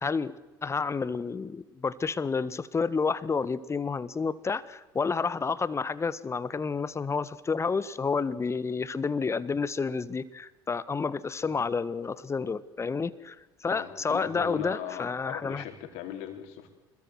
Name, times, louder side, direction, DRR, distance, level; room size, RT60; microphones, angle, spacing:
voice 1, 0.0-0.3 0.6-15.6, left 5 dB, 25° left, 16 dB, 1.4 m, -30 dB
voice 2, 13.7-16.7, left 11 dB, 65° left, 6 dB, 4.0 m, -38 dB
26.0 x 22.0 x 8.0 m, 1.1 s
figure-of-eight pair, 65°, 12 cm